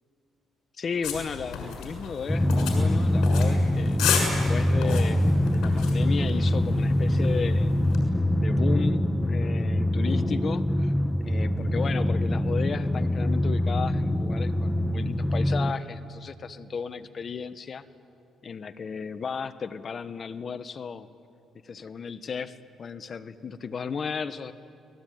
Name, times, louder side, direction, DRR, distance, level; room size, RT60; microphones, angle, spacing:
voice 1, 0.8-4.0 4.5-7.8 8.4-10.9 11.2-17.8 18.4-21.1 21.6-24.5, left 5 dB, 45° left, 11 dB, 1.3 m, -34 dB
sound 1, 1.0-8.0, left 6 dB, 85° left, 6.6 m, -33 dB
Drum, 2.3-15.7, left 1 dB, 5° left, 1.2 m, -24 dB
30.0 x 21.0 x 9.3 m, 2.8 s
cardioid pair, 90°, 0 cm